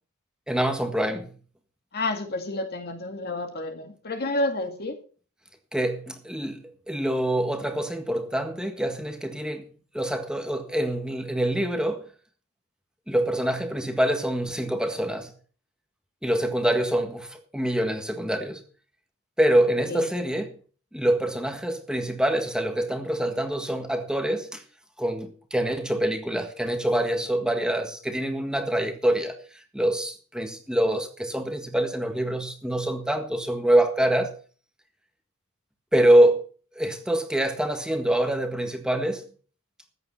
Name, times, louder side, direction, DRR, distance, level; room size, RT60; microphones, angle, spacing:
voice 1, 0.5-1.3 5.7-9.7 9.9-12.1 13.1-15.3 16.2-18.6 19.4-20.5 20.9-24.6 25.0-34.3 35.9-36.4 36.7-39.3, right 1 dB, 5° right, 1.6 m, -25 dB
voice 2, 1.9-5.0 19.9-20.1, left 2 dB, 50° left, 2.1 m, -30 dB
14.5 x 9.1 x 5.7 m
head